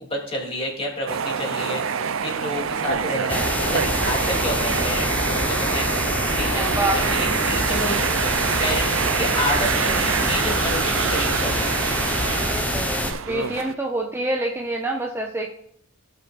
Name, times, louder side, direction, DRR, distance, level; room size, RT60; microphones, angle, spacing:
voice 1, 0.0-1.8 2.2-3.8 4.1-5.9 6.4-8.0 8.6-11.7, left 1 dB, 30° left, -2 dB, 3.2 m, -29 dB
sound 1, 1.1-13.7, right 7 dB, 80° right, 0.6 m, -26 dB
sound 2, 3.3-13.1, left 1 dB, 10° left, 1.0 m, -25 dB
voice 2, 6.5-7.3 12.2-15.5, right 1 dB, 10° right, 0 dB, 1.1 m, -27 dB
17.5 x 6.1 x 2.6 m, 0.65 s
head